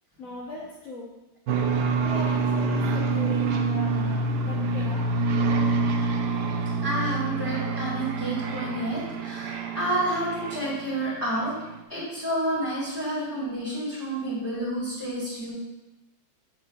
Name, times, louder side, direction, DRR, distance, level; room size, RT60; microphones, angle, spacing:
voice 1, 0.2-1.1 1.9-5.0, left 2 dB, 50° left, -6 dB, 1.3 m, -38 dB
sound 1, 1.5-11.0, right 3 dB, 70° right, 1.0 m, -26 dB
voice 2, 6.8-11.5 11.9-15.5, right 1 dB, 10° left, -11 dB, 2.1 m, -29 dB
7.7 x 6.1 x 2.4 m, 1.0 s
omnidirectional pair, 2.2 m